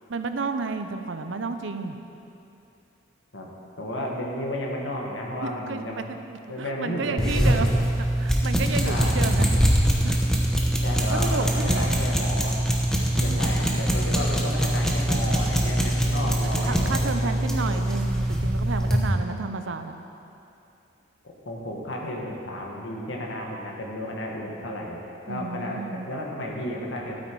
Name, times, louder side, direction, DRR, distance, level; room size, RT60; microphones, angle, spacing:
voice 1, 0.1-2.0 5.4-9.5 9.8-10.2 11.1-11.9 13.1-13.8 16.2-20.0 25.3-26.1, right 4 dB, 70° right, 8 dB, 0.6 m, -32 dB
voice 2, 3.8-6.1 6.5-7.8 8.8-9.2 10.8-12.6 13.2-17.0 17.2-17.8 21.4-25.0 25.3-27.2, left 1 dB, 70° left, -2 dB, 1.7 m, -32 dB
sound 1, 7.2-19.1, right 1 dB, 5° left, 0.9 m, -23 dB
12.5 x 8.5 x 4.7 m, 2.8 s
head